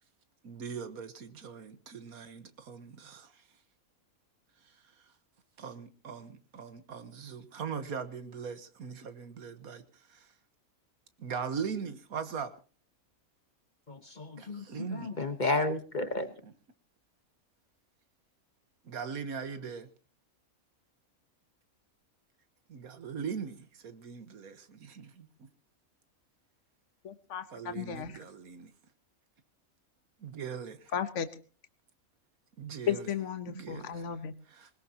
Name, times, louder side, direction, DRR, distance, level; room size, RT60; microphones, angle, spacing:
voice 1, 0.4-3.4 5.6-10.3 11.2-12.5 14.4-15.1 16.4-16.5 18.8-19.9 22.7-25.5 27.5-28.7 30.2-30.9 32.6-33.1 33.5-34.0 34.5-34.7, right 6 dB, 80° right, 11 dB, 1.7 m, -40 dB
voice 2, 13.9-16.3, left 2 dB, 35° left, 9 dB, 1.2 m, -32 dB
voice 3, 27.0-28.2 30.9-31.3 32.9-34.3, left 8 dB, 60° left, 11 dB, 1.4 m, -34 dB
20.5 x 19.5 x 2.9 m, 0.36 s
omnidirectional pair, 1.5 m